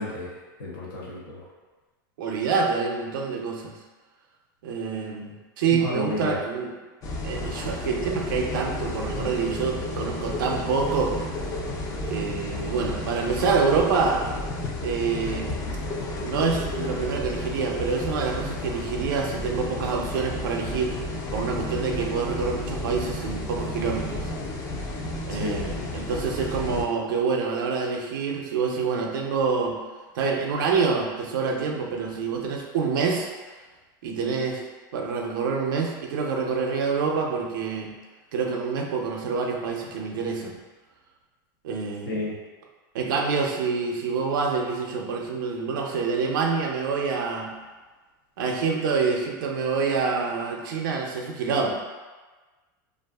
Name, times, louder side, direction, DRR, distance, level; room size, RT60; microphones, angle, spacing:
voice 1, 0.0-1.5 5.7-6.4 25.3-25.6 42.1-42.3, left 2 dB, 90° left, -4 dB, 0.7 m, -32 dB
voice 2, 2.2-3.7 4.6-6.7 7.2-11.1 12.1-14.2 14.8-15.5 16.2-24.3 25.3-29.8 30.1-33.3 34.0-34.6 34.9-37.9 38.3-40.6 41.6-42.3 42.9-47.5 48.4-51.7, right 5 dB, 80° right, 1 dB, 0.5 m, -26 dB
sound 1, 7.0-26.9, left 2 dB, 30° left, 0.4 m, -32 dB
2.5 x 2.4 x 2.3 m, 1.3 s
supercardioid pair, 115°, 11 cm